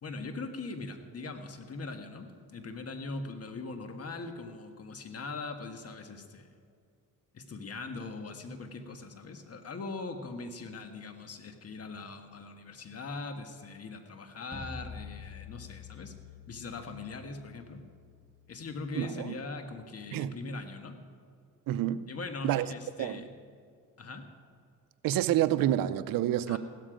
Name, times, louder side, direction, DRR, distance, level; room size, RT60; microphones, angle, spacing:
voice 1, 0.0-6.5 7.3-16.1 16.5-17.8 18.5-21.0 22.1-23.3 24.0-24.3 26.5-26.6, left 3 dB, 45° left, 1.5 m, -41 dB
sound 1, 14.5-19.5, left 5 dB, 5° left, 1.4 m, -48 dB
voice 2, 18.9-19.3 20.1-20.3 21.7-22.1 22.4-22.7 23.0-23.2 25.0-26.6, right 12 dB, 80° right, 0.6 m, -28 dB
16.0 x 13.0 x 5.1 m
cardioid pair, 85°, 34 cm